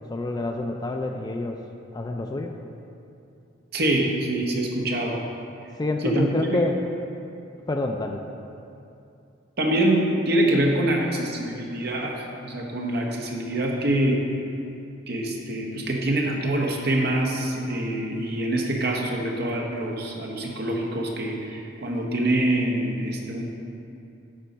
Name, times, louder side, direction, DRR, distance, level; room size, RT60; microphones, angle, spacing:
voice 1, 0.0-1.6 1.9-2.6 5.8-6.7 7.7-8.2, left 2 dB, 20° left, 3 dB, 0.3 m, -27 dB
voice 2, 3.7-5.2 6.0-6.2 6.5-6.6 9.6-14.2 15.1-23.4, right 1 dB, 50° right, 0 dB, 0.9 m, -25 dB
8.9 x 4.0 x 5.3 m, 2.6 s
head